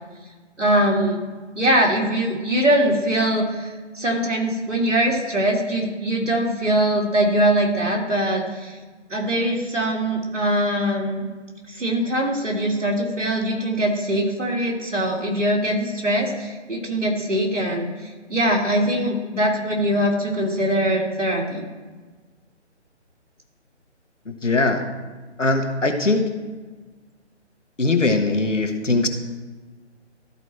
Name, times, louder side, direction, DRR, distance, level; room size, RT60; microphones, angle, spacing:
voice 1, 0.6-1.2 1.6-8.8 9.1-11.3 11.7-17.9 18.3-21.7, right 1 dB, 85° right, -1 dB, 2.4 m, -22 dB
voice 2, 24.4-24.8 25.4-26.2 27.8-29.1, left 3 dB, 90° left, 6 dB, 1.4 m, -20 dB
13.0 x 4.6 x 4.2 m, 1.4 s
figure-of-eight pair, 145°, 36 cm